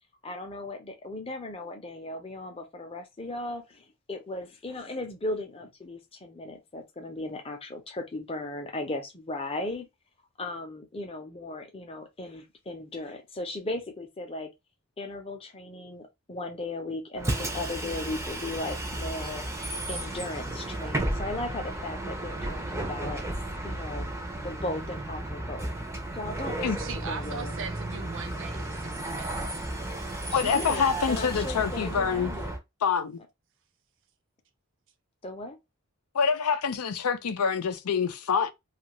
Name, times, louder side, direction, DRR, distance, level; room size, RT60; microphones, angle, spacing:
voice 1, 0.2-9.9 10.4-14.5 15.0-19.4 19.9-23.3 23.6-24.1 24.4-25.7 26.1-27.5 30.3-32.6 35.2-35.6, left 2 dB, 25° left, 0.6 m, -37 dB
Bus, 17.2-32.6, right 1 dB, 10° right, 0.6 m, -34 dB
voice 2, 26.8-29.6, right 5 dB, 60° right, 0.5 m, -40 dB
voice 3, 30.3-32.3 32.8-33.2 36.1-38.5, left 6 dB, 85° left, 0.5 m, -26 dB
2.7 x 2.4 x 2.9 m
head